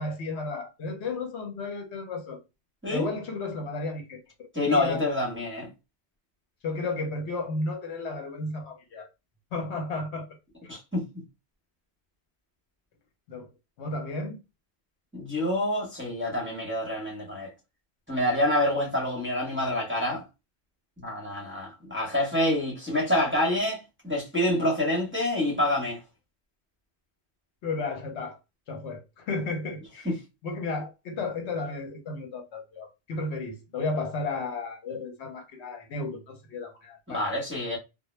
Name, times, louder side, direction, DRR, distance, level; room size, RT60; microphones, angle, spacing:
voice 1, 0.0-2.4 2.9-5.0 6.6-9.1 9.5-10.3 10.6-10.7 13.3-13.5 13.8-14.4 27.6-28.4 28.7-30.1 30.4-37.2, left 3 dB, 80° left, 1.0 m, -33 dB
voice 2, 4.5-5.7 10.7-11.0 15.1-17.5 18.1-20.2 21.0-26.0 30.0-30.1 37.1-37.8, left 1 dB, 10° right, 0.8 m, -27 dB
2.1 x 2.1 x 3.0 m
omnidirectional pair, 1.2 m